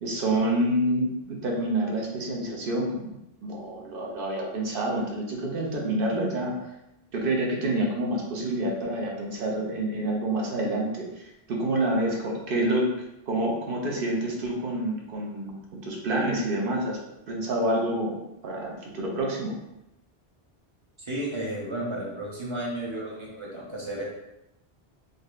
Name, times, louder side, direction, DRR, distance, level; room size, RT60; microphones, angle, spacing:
voice 1, 0.0-6.6 7.1-12.9 13.3-17.0 17.3-19.6, right 1 dB, 65° right, -1 dB, 0.9 m, -28 dB
voice 2, 21.0-24.0, right 1 dB, 30° right, -4 dB, 0.8 m, -33 dB
3.8 x 2.7 x 2.4 m, 0.89 s
omnidirectional pair, 1.0 m